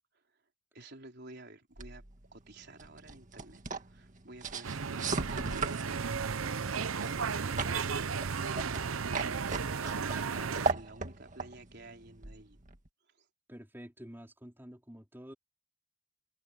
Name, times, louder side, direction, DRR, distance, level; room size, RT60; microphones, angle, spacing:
voice 1, 0.7-2.0 2.3-8.2 8.5-12.6 13.0-13.3, right 2 dB, 55° right, 4.4 m, -52 dB
sound 1, 1.8-12.9, right 3 dB, 40° right, 1.8 m, -39 dB
sound 2, 4.6-10.7, right 5 dB, 80° right, 0.8 m, -34 dB
voice 2, 13.5-15.3, equal, 10° right, 4.1 m, -49 dB
head